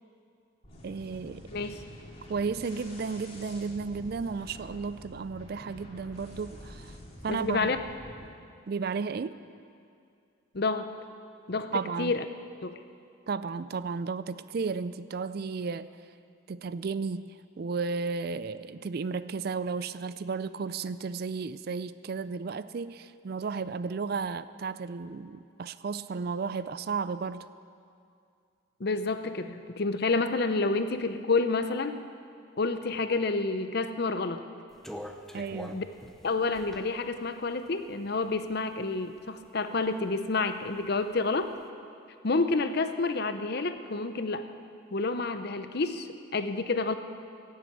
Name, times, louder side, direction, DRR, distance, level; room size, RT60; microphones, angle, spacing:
sound 1, 0.6-8.3, equal, 30° left, 2.6 m, -47 dB
voice 1, 0.8-1.5 2.3-7.0 7.2-7.7 8.7-9.4 11.7-12.1 13.3-15.9 16.5-27.5 35.3-35.8, right 5 dB, 50° right, 14 dB, 0.4 m, -33 dB
voice 2, 7.3-7.8 10.5-10.9 11.5-12.3 12.6-12.8 28.8-32.0 32.6-34.4 35.7-35.8 36.2-41.5 42.2-44.5 44.9-47.0, left 3 dB, 50° left, 9 dB, 0.7 m, -29 dB
sound 2, 34.7-38.7 39.1-40.1 40.5-41.5, equal, ahead, 0.6 m, -45 dB
17.0 x 7.6 x 8.3 m, 2.4 s
head